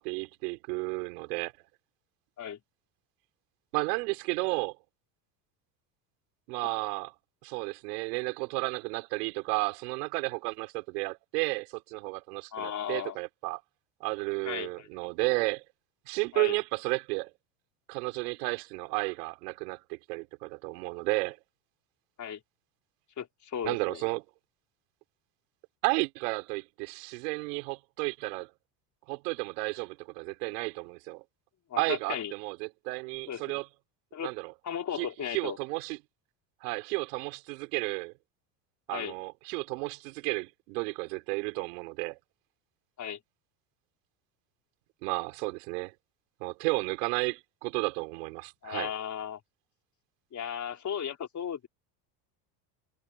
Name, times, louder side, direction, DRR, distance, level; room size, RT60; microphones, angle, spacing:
voice 1, 0.0-1.5 3.7-4.8 6.5-7.1 7.4-13.6 14.0-15.6 16.1-17.3 17.9-21.4 23.6-24.2 25.8-28.5 29.1-31.2 31.8-33.7 34.2-34.5 34.9-36.0 36.6-38.1 38.9-42.2 45.0-45.9 46.4-48.9, right 28 dB, 75° right, 4.9 m, -32 dB
voice 2, 12.5-13.2 14.4-14.9 16.3-16.6 22.2-22.4 23.2-24.0 31.7-32.3 33.3-33.6 34.1-34.3 34.6-35.6 38.9-39.1 43.0-43.2 48.6-49.4 50.3-51.7, left 9 dB, 35° left, 4.4 m, -35 dB
supercardioid pair, 100°, 48 cm